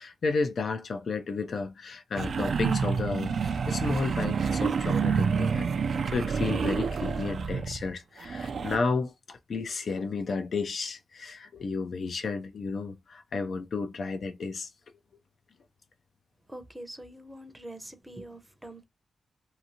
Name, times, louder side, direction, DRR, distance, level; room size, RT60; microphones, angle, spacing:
voice 1, 0.0-14.7, left 4 dB, 65° left, 0.4 m, -32 dB
sound 1, 2.2-7.9 8.2-8.8, right 6 dB, 70° right, 0.3 m, -28 dB
voice 2, 16.5-18.8, right 1 dB, 10° right, 0.6 m, -44 dB
2.8 x 2.5 x 2.7 m
cardioid pair, 75°, 0 cm